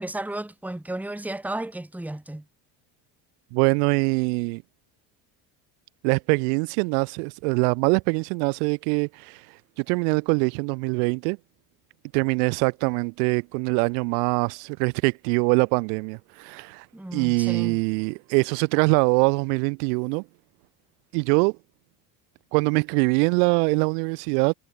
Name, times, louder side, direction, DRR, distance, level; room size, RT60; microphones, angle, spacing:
voice 1, 0.0-2.4 16.9-17.8, right 1 dB, 5° right, 1.7 m, -33 dB
voice 2, 3.5-4.6 6.0-9.4 9.8-11.4 12.1-16.8 17.1-20.2 21.1-21.5 22.5-24.5, right 37 dB, 85° right, 2.9 m, -23 dB
supercardioid pair, 100°, 46 cm